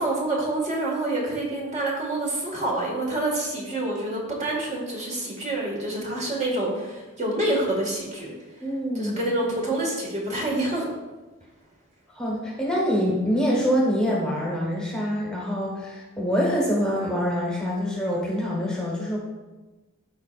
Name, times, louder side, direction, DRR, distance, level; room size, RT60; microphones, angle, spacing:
voice 1, 0.0-8.3 9.0-10.9, right 1 dB, 35° right, -2 dB, 1.8 m, -27 dB
voice 2, 8.6-9.2 12.1-19.2, equal, 5° left, -4 dB, 1.3 m, -25 dB
14.0 x 4.6 x 2.5 m, 1.2 s
head